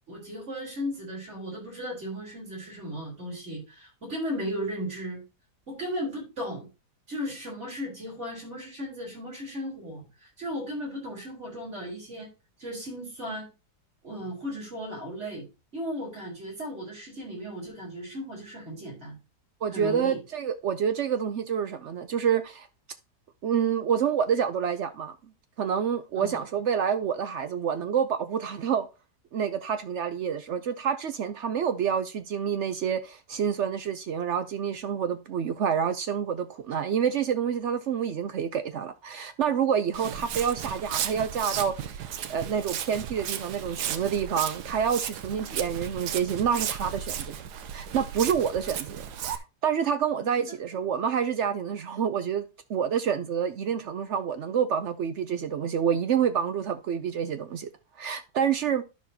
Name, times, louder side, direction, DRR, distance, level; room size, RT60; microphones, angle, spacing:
voice 1, 0.1-5.2 5.7-6.7 7.1-12.3 12.6-13.5 14.0-15.5 15.7-19.2 19.7-20.2 26.2-26.4 50.2-50.3, equal, 45° right, 4.1 m, -36 dB
voice 2, 19.6-22.7 23.4-25.2 25.6-28.9 29.3-41.9 42.3-47.3 47.7-52.4 52.7-57.7 58.0-58.8, right 7 dB, 65° right, 0.7 m, -28 dB
Walk footsteps, 39.9-49.4, right 9 dB, 85° right, 1.3 m, -35 dB
11.5 x 6.2 x 2.7 m
omnidirectional pair, 1.7 m